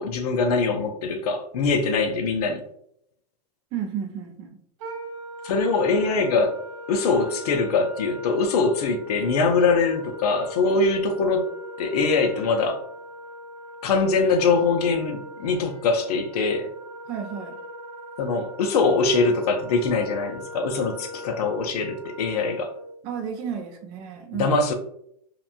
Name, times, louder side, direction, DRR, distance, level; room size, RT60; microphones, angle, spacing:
voice 1, 0.0-2.6 5.4-11.5 11.8-12.8 13.8-16.7 18.2-22.7 24.3-24.7, left 4 dB, 75° left, 5 dB, 0.5 m, -23 dB
voice 2, 3.7-4.6 17.1-17.6 23.0-24.5, right 7 dB, 25° right, 5 dB, 0.3 m, -32 dB
Wind instrument woodwind instrument, 4.8-22.9, left 1 dB, 50° right, 0.9 m, -40 dB
2.9 x 2.2 x 2.4 m, 0.70 s
supercardioid pair, 155°, 20 cm